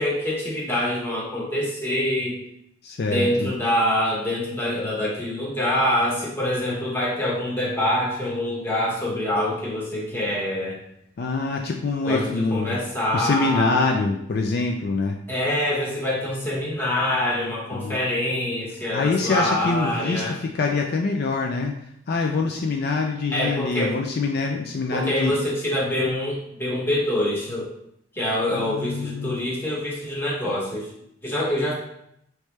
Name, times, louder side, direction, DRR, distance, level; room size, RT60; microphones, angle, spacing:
voice 1, 0.0-2.4 3.1-10.8 12.0-13.8 15.3-20.4 23.3-23.9 24.9-27.7 28.1-30.9 31.2-31.7, left 1 dB, 10° left, -5 dB, 1.2 m, -25 dB
voice 2, 2.8-3.5 11.2-12.8 13.1-15.2 17.7-18.0 18.9-21.7 22.1-25.4 28.5-29.4, left 3 dB, 55° left, 2 dB, 0.4 m, -25 dB
4.9 x 3.2 x 3.2 m, 0.76 s
head